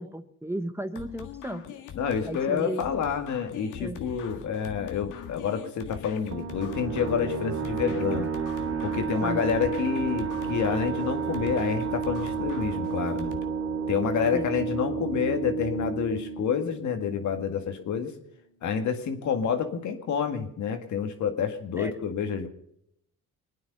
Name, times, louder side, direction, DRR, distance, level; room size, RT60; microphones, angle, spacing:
voice 1, 0.0-1.6 2.3-2.9 3.8-4.0 9.2-9.5 14.3-14.5 21.8-21.9, right 1 dB, 10° right, 10 dB, 1.0 m, -34 dB
sound 1, 0.9-13.4, left 9 dB, 85° left, 1.7 m, -42 dB
voice 2, 2.0-8.3 8.8-13.3 13.9-18.1 18.6-22.5, left 7 dB, 70° left, 6 dB, 2.1 m, -28 dB
sound 2, 6.3-17.6, right 6 dB, 55° right, 2.6 m, -31 dB
sound 3, 8.6-14.9, right 8 dB, 70° right, 1.7 m, -43 dB
23.0 x 9.6 x 5.5 m, 0.75 s
cardioid pair, 90°, 30 cm